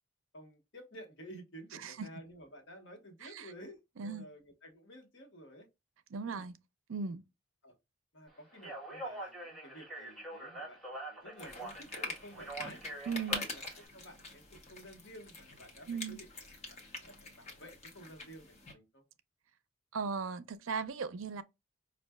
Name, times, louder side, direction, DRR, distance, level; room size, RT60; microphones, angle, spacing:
voice 1, 0.3-5.7 6.2-6.5 7.6-7.7 8.1-10.8 11.1-12.8 13.4-16.5 17.0-19.0, equal, 60° left, 1.2 m, -52 dB
voice 2, 1.7-2.1 3.2-3.5 4.0-4.3 6.1-6.5 6.9-7.2 13.1-13.5 15.9-16.2 19.9-21.4, right 5 dB, 80° right, 0.5 m, -38 dB
Speech, 8.5-13.9, right 2 dB, ahead, 1.2 m, -45 dB
sound 1, 11.4-18.7, left 3 dB, 35° left, 0.9 m, -45 dB
5.5 x 2.4 x 2.2 m
head